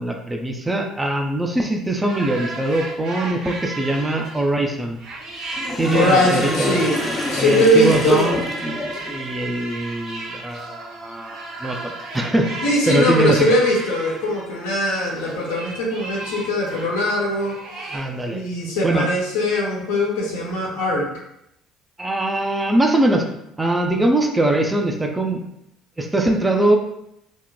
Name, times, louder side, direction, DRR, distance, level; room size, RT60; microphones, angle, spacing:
voice 1, 0.0-5.0 5.8-6.8 7.4-8.8 9.0-13.4 17.9-18.4 18.8-19.1 22.0-23.3 23.6-25.4 26.0-26.8, right 1 dB, 15° right, 3 dB, 0.4 m, -22 dB
sound 1, 2.1-4.6 5.0-18.0, right 3 dB, 60° right, 1.1 m, -34 dB
Sink (filling or washing), 5.3-9.3, left 2 dB, 30° left, 0.6 m, -28 dB
voice 2, 5.9-7.0 7.3-8.4 12.6-17.6 18.3-21.1, left 1 dB, 75° left, -3 dB, 0.6 m, -20 dB
2.8 x 2.1 x 2.2 m, 0.79 s
hypercardioid pair, 55°, 0 cm